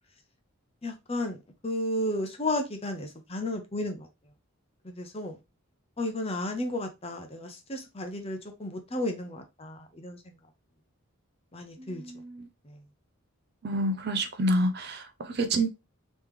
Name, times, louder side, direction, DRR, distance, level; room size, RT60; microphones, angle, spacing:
voice 1, 0.8-1.4 1.6-4.1 4.8-5.4 6.0-10.2 11.5-12.0 12.6-12.8, left 1 dB, 25° left, 0.7 m, -33 dB
voice 2, 11.8-12.5 13.6-15.7, right 1 dB, 45° right, 0.5 m, -28 dB
3.1 x 3.1 x 3.6 m
head